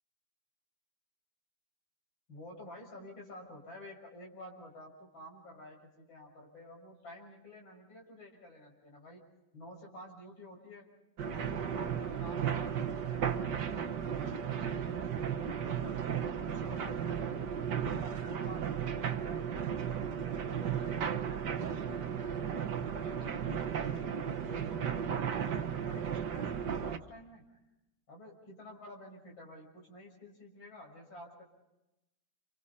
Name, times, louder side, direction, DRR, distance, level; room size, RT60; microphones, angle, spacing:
voice 1, 2.3-9.3 9.5-10.9 11.2-16.0 16.4-19.7 20.2-24.1 24.4-27.6 28.1-31.4, left 1 dB, 85° left, -1 dB, 6.9 m, -51 dB
sound 1, 11.2-27.0, right 8 dB, 65° right, 1.7 m, -35 dB
30.0 x 29.0 x 4.2 m, 0.93 s
omnidirectional pair, 2.1 m